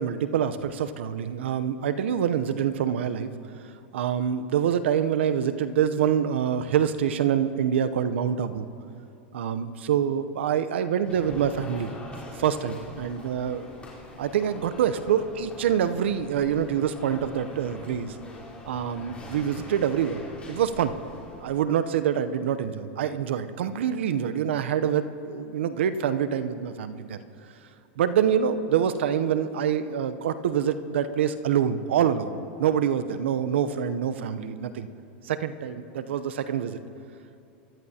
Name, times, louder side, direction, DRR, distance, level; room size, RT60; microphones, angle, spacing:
voice 1, 0.0-3.3 3.9-8.7 9.3-11.9 12.4-13.7 14.2-18.2 18.7-20.2 20.5-20.9 21.4-27.2 28.0-34.9 35.3-36.8, right 8 dB, 80° right, 11 dB, 0.7 m, -26 dB
sound 1, 11.0-21.6, left 2 dB, 20° left, 4.0 m, -43 dB
24.0 x 13.0 x 2.8 m, 2.8 s
hypercardioid pair, 110°, 6 cm